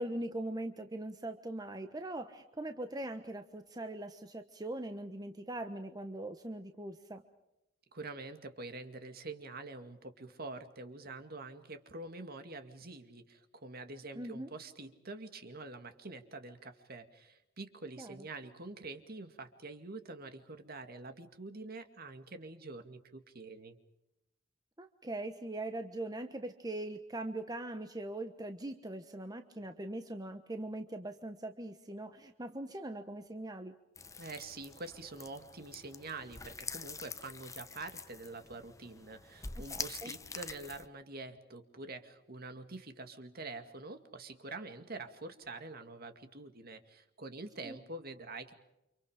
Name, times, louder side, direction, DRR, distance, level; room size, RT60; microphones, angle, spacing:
voice 1, 0.0-7.2 14.1-14.5 18.0-18.1 24.8-33.7 39.5-40.1 47.6-47.8, right 1 dB, 20° right, 7 dB, 1.2 m, -41 dB
voice 2, 7.9-23.8 34.2-48.5, right 3 dB, 50° right, 7 dB, 2.2 m, -46 dB
sound 1, 34.0-40.9, left 4 dB, 15° left, 0.9 m, -46 dB
30.0 x 26.5 x 5.1 m, 0.89 s
head